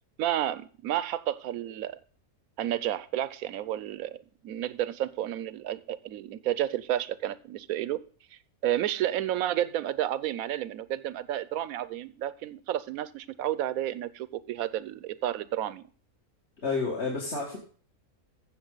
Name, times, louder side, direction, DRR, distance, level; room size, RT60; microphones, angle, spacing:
voice 1, 0.2-2.0 2.6-8.0 8.3-15.9, right 12 dB, 75° right, 1.1 m, -31 dB
voice 2, 16.6-17.6, left 4 dB, 50° left, 2.3 m, -30 dB
15.5 x 6.8 x 3.9 m
omnidirectional pair, 1.5 m